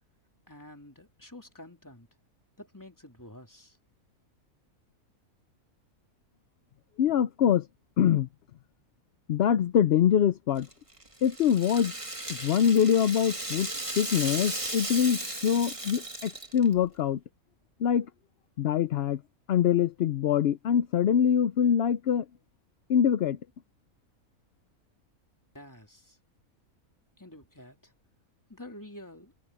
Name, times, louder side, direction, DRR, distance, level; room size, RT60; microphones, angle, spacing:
voice 1, 0.5-2.1 2.6-3.8 25.5-26.2 27.2-27.9 28.5-29.3, left 1 dB, 15° left, 3.1 m, -48 dB
voice 2, 7.0-7.7 8.0-8.3 9.3-10.7 11.2-12.0 12.3-13.7 14.0-17.2 17.8-18.1 18.6-19.2 19.5-22.2 22.9-23.4, left 8 dB, 60° left, 0.7 m, -24 dB
Rattle (instrument), 10.6-16.8, right 2 dB, 20° right, 2.3 m, -36 dB
omnidirectional pair, 1.5 m